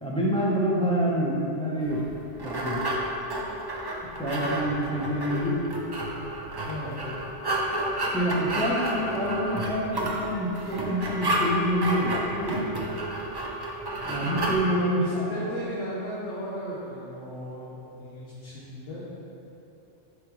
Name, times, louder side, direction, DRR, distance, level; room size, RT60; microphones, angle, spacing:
voice 1, 0.0-2.1 2.4-2.8 4.0-5.6 8.1-12.6 14.1-15.5, equal, 5° left, -6 dB, 0.8 m, -27 dB
sound 1, 1.9-14.6, right 1 dB, 30° right, 0.5 m, -31 dB
voice 2, 6.6-7.0 14.8-19.2, left 1 dB, 85° left, -8 dB, 1.4 m, -36 dB
10.0 x 3.8 x 3.1 m, 2.9 s
omnidirectional pair, 1.2 m